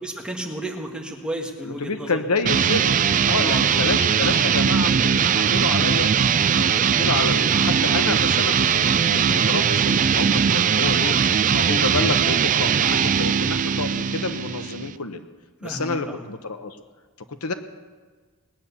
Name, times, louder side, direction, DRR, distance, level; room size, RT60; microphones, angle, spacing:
voice 1, 0.0-2.2 3.3-3.7 15.6-16.2, right 1 dB, 5° right, -1 dB, 1.8 m, -32 dB
voice 2, 1.6-2.9 3.2-6.1 6.5-11.2 11.5-15.2 15.6-16.8 17.4-17.5, left 3 dB, 85° left, 8 dB, 1.1 m, -29 dB
sound 1, 2.4-15.0, right 7 dB, 35° right, 0.4 m, -20 dB
20.5 x 9.7 x 7.1 m, 1.4 s
head